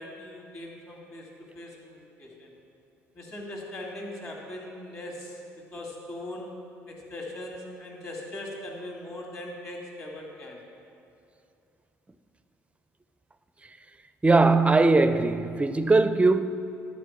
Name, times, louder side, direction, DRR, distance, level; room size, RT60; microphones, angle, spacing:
voice 1, 0.0-2.5 3.1-6.5 6.9-10.6, left 1 dB, 35° left, 2.4 m, -40 dB
voice 2, 14.2-16.4, right 3 dB, 15° right, 0.5 m, -20 dB
11.5 x 4.3 x 5.9 m
figure-of-eight pair, 50°, 8 cm